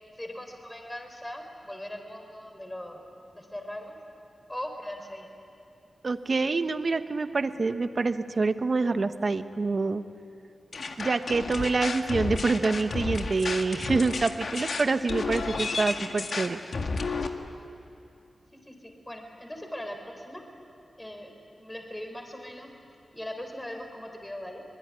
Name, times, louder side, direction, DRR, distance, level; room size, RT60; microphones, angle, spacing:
voice 1, 0.2-3.0 3.3-4.0 4.5-5.3 18.6-20.4 21.0-21.3 21.6-22.7 23.1-24.6, left 1 dB, 15° left, 3 dB, 4.2 m, -39 dB
voice 2, 6.0-10.0 11.0-16.6, right 3 dB, 55° right, 10 dB, 1.2 m, -26 dB
sound 1, 10.7-17.3, left 3 dB, 70° left, 1.9 m, -32 dB
24.5 x 22.0 x 9.8 m, 2.5 s
cardioid pair, 60°, 0 cm